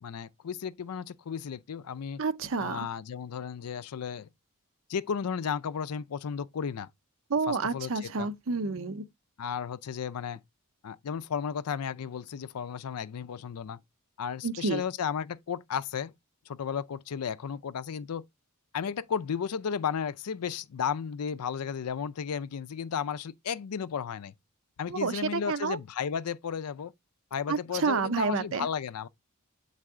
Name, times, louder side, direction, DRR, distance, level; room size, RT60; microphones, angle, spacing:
voice 1, 0.0-2.2 2.6-4.3 4.9-6.9 7.5-8.3 9.4-10.4 10.8-13.8 14.2-16.1 16.5-18.2 18.7-24.3 24.8-26.9 27.3-29.1, left 7 dB, 90° left, 0.5 m, -34 dB
voice 2, 2.2-2.9 7.3-9.0 14.4-14.8 24.9-25.8 27.5-28.7, right 4 dB, 65° right, 0.7 m, -29 dB
7.7 x 4.0 x 3.6 m
head